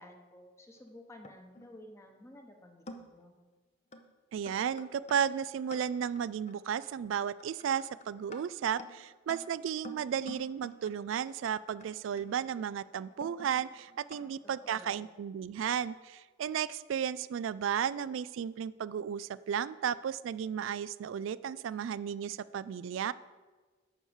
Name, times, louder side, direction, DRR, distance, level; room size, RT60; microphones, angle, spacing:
voice 1, 0.0-3.3 14.2-14.3 14.6-15.1, left 1 dB, 15° left, 3 dB, 1.1 m, -53 dB
sound 1, 0.7-1.7 2.4-2.5 2.9-3.3 3.9-4.1 4.5-14.3, left 1 dB, 35° left, 0.7 m, -51 dB
voice 2, 4.3-23.1, right 8 dB, 90° right, 17 dB, 0.3 m, -34 dB
11.0 x 4.7 x 7.2 m, 1.4 s
head